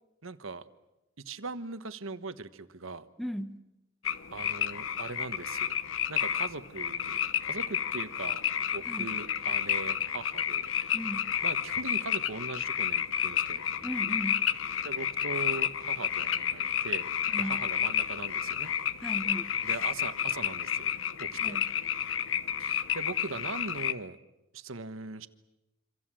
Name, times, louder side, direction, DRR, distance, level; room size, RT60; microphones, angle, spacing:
voice 1, 0.2-0.6 1.2-3.0 4.3-5.7 6.1-8.4 8.7-10.7 11.4-13.8 14.8-17.1 17.4-18.7 19.6-20.9 21.2-21.6 22.6-24.2 24.5-25.3, right 3 dB, 85° right, 11 dB, 1.3 m, -40 dB
voice 2, 3.2-3.6 8.9-9.1 10.9-11.3 13.8-14.5 17.3-17.6 19.0-19.5 21.4-21.7, equal, ahead, 9 dB, 1.1 m, -36 dB
sound 1, 4.0-23.9, left 9 dB, 75° left, 1.0 m, -31 dB
27.5 x 26.0 x 7.6 m, 0.94 s
head